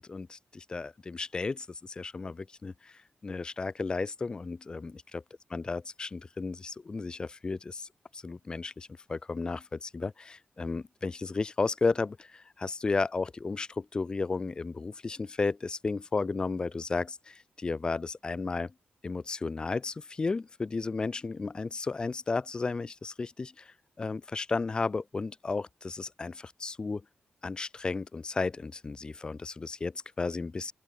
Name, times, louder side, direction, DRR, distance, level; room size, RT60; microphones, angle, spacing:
voice 1, 0.0-5.2 5.5-18.7 19.0-27.0 27.4-30.7, left 4 dB, 25° left, 0.6 m, -33 dB
open air
wide cardioid pair, 180°, 4 cm